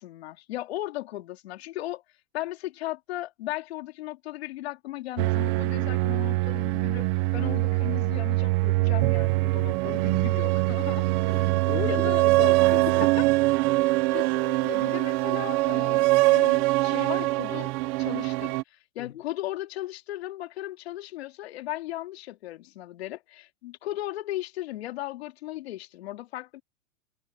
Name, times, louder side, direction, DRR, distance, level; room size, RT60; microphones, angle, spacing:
voice 1, 0.0-2.0 2.3-11.0 11.8-12.2 13.0-13.3 14.1-17.7 18.0-26.6, left 15 dB, 55° left, 2.5 m, -36 dB
sound 1, 5.2-18.6, right 21 dB, 25° right, 0.7 m, -23 dB
voice 2, 11.2-13.0 19.0-19.2, left 11 dB, 80° left, 4.8 m, -36 dB
supercardioid pair, 165°, 37 cm